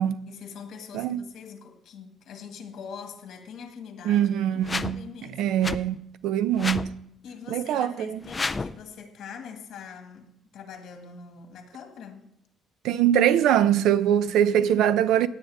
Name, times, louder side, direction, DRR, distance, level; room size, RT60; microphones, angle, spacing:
voice 1, 0.3-5.6 7.2-12.3, left 6 dB, 55° left, 2.0 m, -43 dB
voice 2, 0.9-1.2 4.0-5.0 5.3-6.0 6.2-6.9 7.5-8.2 12.8-15.3, right 10 dB, 75° right, 0.6 m, -22 dB
sound 1, 4.6-5.0 5.6-5.8 6.6-6.9 8.2-8.8, left 3 dB, 15° left, 0.4 m, -29 dB
17.0 x 9.4 x 3.5 m
cardioid pair, 175°, 0 cm